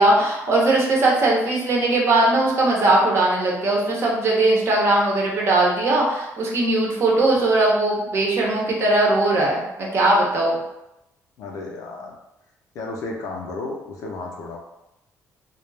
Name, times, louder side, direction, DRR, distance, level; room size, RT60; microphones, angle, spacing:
voice 1, 0.0-10.6, right 2 dB, 45° right, -3 dB, 0.7 m, -19 dB
voice 2, 11.4-12.2 12.7-14.6, left 3 dB, 70° left, 0 dB, 0.5 m, -33 dB
2.2 x 2.0 x 3.2 m, 0.90 s
cardioid pair, 130°, 6 cm